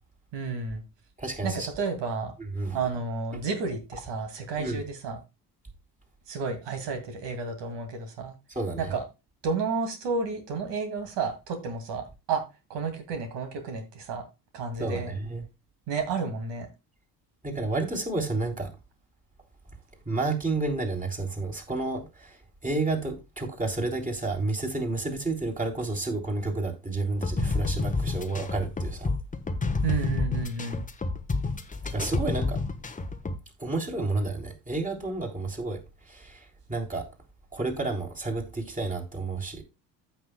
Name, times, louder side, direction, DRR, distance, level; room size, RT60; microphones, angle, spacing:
voice 1, 0.3-0.8 1.4-2.3 2.7-5.2 6.3-8.3 8.8-9.0 9.4-12.4 12.7-14.2 14.5-15.1 15.9-16.7 29.8-30.8, right 4 dB, 60° right, 2.4 m, -31 dB
voice 2, 1.2-1.7 2.5-2.8 4.6-4.8 8.6-8.9 14.8-15.4 17.4-18.7 20.1-22.4 22.6-29.1 31.8-32.6 33.6-35.8 36.1-37.1 37.5-39.6, right 3 dB, 15° right, 3.6 m, -30 dB
sound 1, 27.1-33.4, left 3 dB, 15° left, 1.2 m, -29 dB
15.0 x 6.1 x 2.3 m
hypercardioid pair, 60°, 48 cm